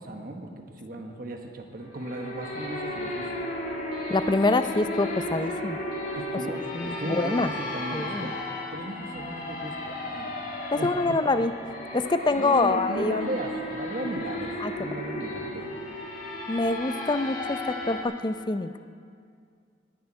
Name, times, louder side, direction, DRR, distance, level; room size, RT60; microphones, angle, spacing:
voice 1, 0.0-3.3 6.1-8.3 8.7-10.3 10.7-11.2 12.3-15.8, right 1 dB, 50° right, 3 dB, 1.2 m, -36 dB
sound 1, 1.9-18.0, left 1 dB, 50° left, 2.3 m, -34 dB
voice 2, 4.1-5.8 6.7-7.5 7.9-8.3 10.7-11.5 11.9-13.3 14.6-14.9 16.5-18.7, left 3 dB, 25° left, 12 dB, 0.4 m, -25 dB
10.5 x 10.5 x 9.7 m, 2.3 s
head